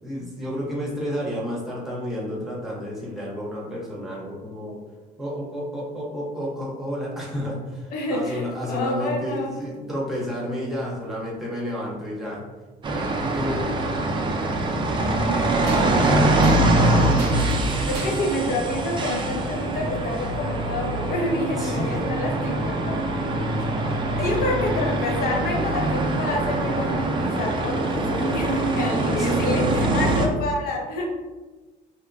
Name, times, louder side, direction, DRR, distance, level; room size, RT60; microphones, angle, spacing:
voice 1, 0.0-4.8 5.2-12.5 13.3-13.7 15.7-16.7 21.5-22.1 24.3-24.6 29.2-29.4, equal, ahead, -6 dB, 0.9 m, -31 dB
voice 2, 7.9-9.6 15.1-15.9 17.9-23.2 24.2-31.1, left 1 dB, 65° left, 0 dB, 0.7 m, -28 dB
sound 1, 8.3-9.7 11.0-11.1 13.2-13.3 14.1-14.2 15.6-18.3, right 2 dB, 80° right, 0.7 m, -39 dB
sound 2, 12.8-30.3, right 2 dB, 30° right, 0.4 m, -23 dB
2.8 x 2.1 x 2.5 m, 1.2 s
cardioid pair, 110°, 17 cm